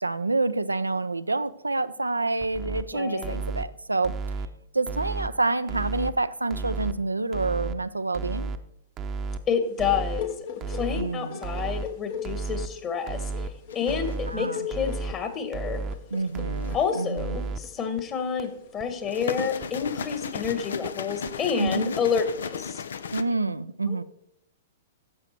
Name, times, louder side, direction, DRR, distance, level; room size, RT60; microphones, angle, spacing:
voice 1, 0.0-4.1 4.7-8.5 10.9-11.4 14.3-14.6 16.1-17.4 21.6-22.0 23.1-24.0, right 3 dB, 90° right, 0.5 m, -28 dB
sound 1, 2.4-2.8 3.2-3.6 4.0-4.5 4.9-5.3 5.7-6.1 6.5-6.9 7.3-7.7 8.1-8.6 9.0-9.4 9.8-10.2 10.6-11.0 11.4-11.8 12.2-12.7 13.1-13.5 13.9-14.3 14.7-15.1 15.5-16.0 16.3-16.8 17.2-17.6 18.0-18.1 18.4-18.5 18.8-18.9 19.2-19.3 19.6-19.7 20.0-20.1 20.4-20.5 20.8-20.9 21.3-21.4 21.7-21.8, right 4 dB, 30° right, 0.8 m, -32 dB
voice 2, 2.9-3.4 9.5-10.3 10.7-13.5 13.7-15.8 16.7-22.8 23.9-24.0, left 6 dB, 30° left, 1.7 m, -29 dB
sound 2, 9.6-20.7, left 9 dB, 50° left, 1.2 m, -40 dB
sound 3, 13.7-14.3 16.3-17.0 18.9-23.2, left 6 dB, 70° left, 0.6 m, -35 dB
11.5 x 7.7 x 4.5 m
figure-of-eight pair, 110°, 0 cm